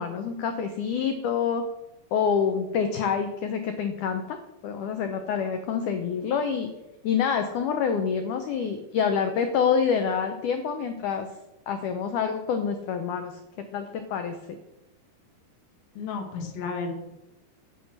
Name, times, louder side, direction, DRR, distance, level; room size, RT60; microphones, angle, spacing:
voice 1, 0.0-1.6 2.1-4.4 4.6-6.7 7.0-11.3 11.7-13.4 13.7-14.4, left 6 dB, 90° left, 6 dB, 1.7 m, -27 dB
voice 2, 16.0-17.0, left 4 dB, 70° left, 3 dB, 3.2 m, -32 dB
10.0 x 5.5 x 7.2 m, 0.94 s
omnidirectional pair, 4.6 m